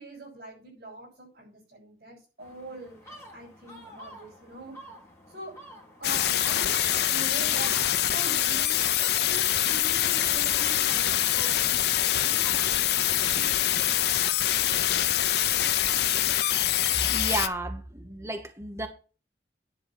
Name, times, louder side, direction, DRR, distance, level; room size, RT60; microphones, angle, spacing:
voice 1, 0.0-4.8 5.3-5.5 6.0-13.5, right 2 dB, 60° right, -7 dB, 7.3 m, -43 dB
sound 1, 2.4-13.4, equal, 15° left, 3.0 m, -50 dB
sound 2, 6.0-17.5, left 12 dB, 65° left, 0.6 m, -25 dB
voice 2, 17.1-18.9, right 2 dB, 15° right, 6 dB, 1.1 m, -32 dB
10.5 x 4.6 x 7.9 m, 0.35 s
head